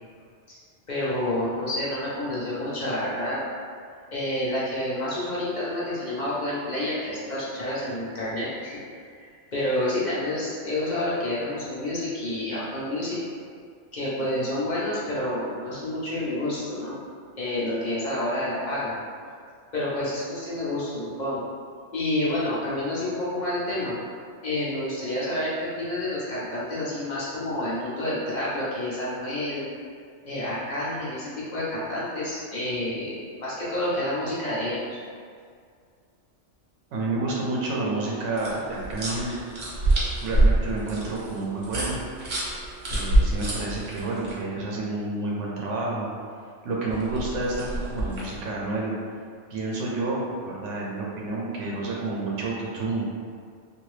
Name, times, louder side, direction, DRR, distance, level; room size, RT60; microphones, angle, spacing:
voice 1, 0.9-3.4 4.1-8.8 9.1-13.2 13.9-16.9 17.4-18.9 19.7-21.4 21.9-23.9 24.4-29.7 30.2-34.9, left 1 dB, 45° left, -9 dB, 0.8 m, -29 dB
voice 2, 36.9-39.3 40.2-42.0 42.9-46.1 46.6-49.0 49.5-53.1, right 2 dB, 85° right, -3 dB, 0.9 m, -29 dB
sound 1, 38.4-44.3 46.9-48.4, right 1 dB, 55° right, 0.9 m, -25 dB
2.8 x 2.5 x 3.1 m, 2.1 s
omnidirectional pair, 1.2 m